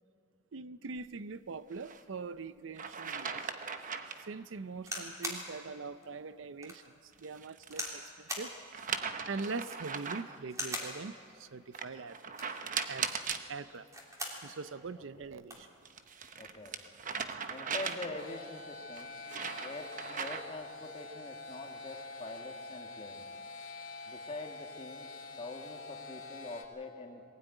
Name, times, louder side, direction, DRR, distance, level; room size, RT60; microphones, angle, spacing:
voice 1, 0.5-3.4 4.2-6.9 7.2-8.6 9.3-12.2 12.4-12.5 12.9-13.1 13.5-13.9 14.4-15.7, right 4 dB, 70° right, 14 dB, 0.6 m, -42 dB
sound 1, 1.7-2.0 2.8-4.3 7.1-8.0 8.7-10.4 11.7-13.5 15.6-18.4 19.0-20.6, right 6 dB, 40° right, 0.9 m, -39 dB
sound 2, 4.8-5.5 6.0-6.1 6.6-6.8 7.7-8.0 8.3-8.5 9.6-9.9 10.5-11.0 12.2-12.6 13.7-14.4 14.9-15.0 15.2-15.7 16.5-16.8, equal, 15° right, 3.4 m, -40 dB
voice 2, 15.0-15.3 16.4-16.8 17.5-19.1 19.6-23.3 24.1-25.1 25.4-27.2, left 2 dB, 30° left, 3 dB, 1.7 m, -44 dB
sound 3, 18.2-26.6, left 3 dB, 85° left, 2.8 m, -46 dB
22.0 x 17.0 x 9.2 m, 2.4 s
head